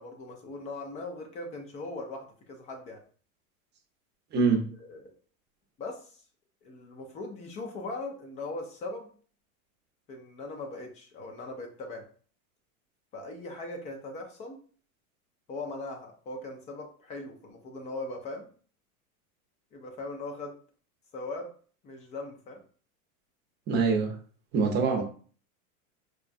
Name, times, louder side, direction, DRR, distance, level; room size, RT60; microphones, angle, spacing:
voice 1, 0.0-3.0 4.8-5.1 5.8-6.1 6.6-9.1 10.1-12.1 13.1-14.6 15.5-18.5 19.7-20.6 21.1-21.5 21.8-22.6 24.9-25.0, left 2 dB, 20° left, 3 dB, 0.3 m, -39 dB
voice 2, 4.3-4.6 23.7-24.1 24.5-25.0, right 4 dB, 25° right, 2 dB, 0.7 m, -24 dB
4.7 x 2.2 x 2.5 m, 0.42 s
supercardioid pair, 135°, 42 cm